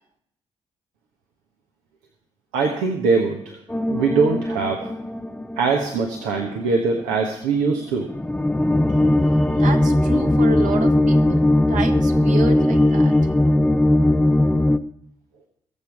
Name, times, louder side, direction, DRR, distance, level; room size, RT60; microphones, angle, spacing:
voice 1, 2.5-3.6 3.9-4.9 5.6-8.1, right 4 dB, 85° right, 2 dB, 1.2 m, -22 dB
sound 1, 3.7-6.1 6.3-6.5 7.1-7.2 8.1-14.8, left 1 dB, 10° left, 0.8 m, -19 dB
voice 2, 8.9-13.3, right 4 dB, 60° right, 5 dB, 1.7 m, -30 dB
21.0 x 7.4 x 4.8 m, 0.74 s
hypercardioid pair, 45°, 14 cm